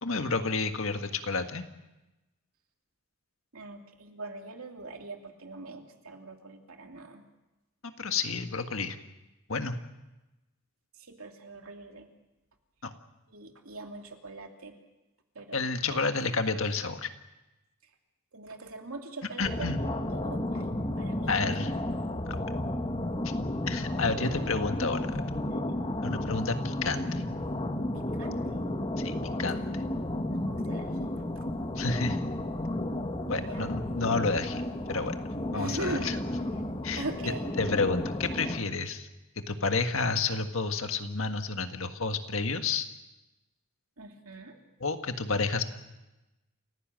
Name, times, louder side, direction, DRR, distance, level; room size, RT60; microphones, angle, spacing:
voice 1, 0.0-1.6 8.0-9.0 9.5-9.8 12.8-12.9 15.5-17.1 19.4-19.8 21.3-21.7 22.3-22.4 23.7-25.2 26.0-27.2 29.0-29.7 31.7-32.2 33.3-34.6 34.9-35.2 35.5-36.2 36.8-39.1 39.3-42.9 44.8-45.6, left 4 dB, 65° left, 7 dB, 1.7 m, -30 dB
voice 2, 3.5-7.2 11.0-12.1 13.3-14.7 15.3-16.1 18.3-19.7 20.1-20.6 21.0-21.3 24.2-24.5 25.4-25.8 27.9-28.6 30.3-31.4 33.3-33.7 35.5-36.2 37.0-37.5 44.0-44.6, right 2 dB, 80° right, 3 dB, 2.8 m, -42 dB
sound 1, 19.4-38.6, left 1 dB, 25° left, 1.2 m, -33 dB
28.5 x 16.0 x 7.6 m, 1.0 s
head